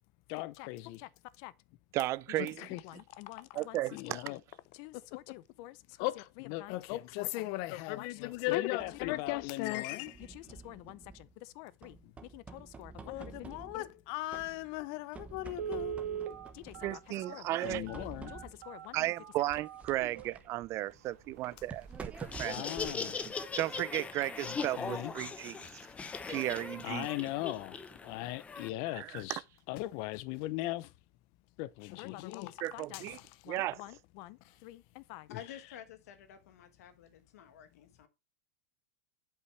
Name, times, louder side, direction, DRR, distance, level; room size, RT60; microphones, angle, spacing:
voice 1, 0.3-1.1 1.4-1.5 2.4-4.4 4.7-11.0 11.4-12.0 12.3-17.0 17.3-19.0 22.5-23.2 24.4-25.1 26.8-27.8 28.0-29.4 29.7-30.9 31.6-35.4, left 17 dB, 50° left, 0.5 m, -39 dB
voice 2, 1.9-2.6 3.5-4.2 16.8-17.8 18.9-22.1 22.4-22.6 23.6-25.7 26.3-27.1 28.9-29.4 32.6-33.2 33.5-33.8, right 16 dB, 35° right, 0.4 m, -34 dB
sound 1, 8.3-9.5 10.1-11.4 11.8-14.0 14.3-14.9 15.1-17.1 17.6-18.7 19.5-24.0, right 5 dB, 15° right, 1.1 m, -50 dB
Telephone, 14.8-14.9 15.5-20.4 20.9-21.0 21.4-21.5 21.9-22.2 22.5-22.6, right 10 dB, 75° right, 1.4 m, -41 dB
Laughter, 22.1-28.7, left 5 dB, 15° left, 0.7 m, -40 dB
voice 3, 35.3-38.1, left 10 dB, 80° left, 1.4 m, -50 dB
8.0 x 5.6 x 3.2 m
supercardioid pair, 135°, 8 cm